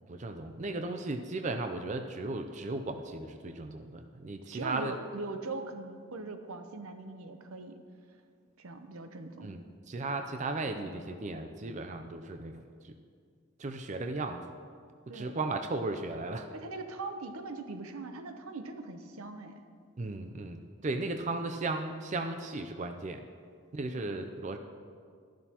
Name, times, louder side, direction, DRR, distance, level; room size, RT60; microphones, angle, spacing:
voice 1, 0.1-4.9 9.4-12.9 13.6-14.5 15.1-16.5 20.0-23.3 23.7-24.6, right 2 dB, 35° right, 6 dB, 0.4 m, -36 dB
voice 2, 4.5-7.8 8.6-9.5 15.1-15.4 16.5-19.6 23.9-24.1, right 3 dB, 90° right, 7 dB, 0.8 m, -41 dB
13.0 x 11.0 x 2.9 m, 2.1 s
head